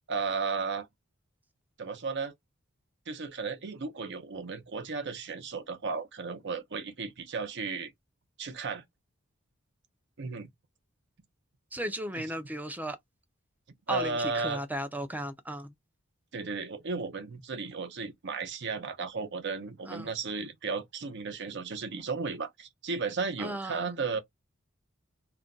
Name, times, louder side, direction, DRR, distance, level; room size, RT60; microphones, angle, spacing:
voice 1, 0.1-0.9 1.8-2.3 3.1-7.9 8.4-8.8 10.2-10.5 12.2-12.3 13.9-14.6 16.3-24.2, right 4 dB, 60° right, 0.7 m, -34 dB
voice 2, 11.7-13.0 13.9-15.7 19.9-20.1 23.4-24.0, right 1 dB, 10° right, 0.4 m, -35 dB
2.5 x 2.2 x 3.7 m
head